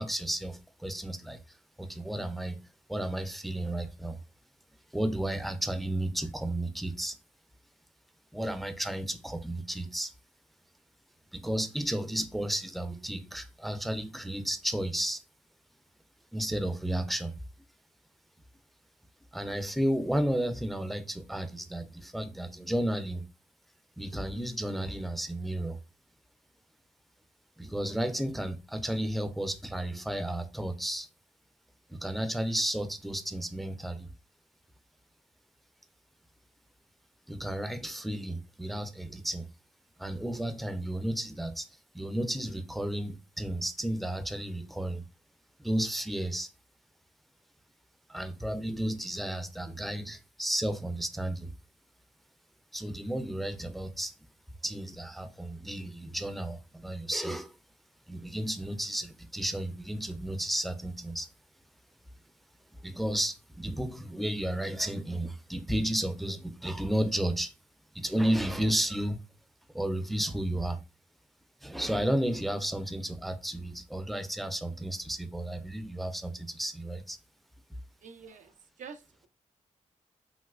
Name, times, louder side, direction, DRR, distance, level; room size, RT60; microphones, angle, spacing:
voice 1, 0.0-2.6 2.9-4.2 4.9-7.2 8.3-10.1 11.3-15.2 16.3-17.3 19.3-23.3 24.0-25.8 27.6-31.1 31.9-34.1 37.3-39.5 40.0-41.7 41.9-45.0 45.6-46.5 48.1-51.5 52.7-54.1 54.6-57.5 58.1-61.3 62.8-67.5 67.9-69.2 69.7-70.8 71.6-77.2, right 1 dB, ahead, 0.4 m, -32 dB
voice 2, 78.0-79.3, right 6 dB, 70° right, 0.5 m, -48 dB
3.1 x 2.9 x 2.3 m
cardioid pair, 65°, 13 cm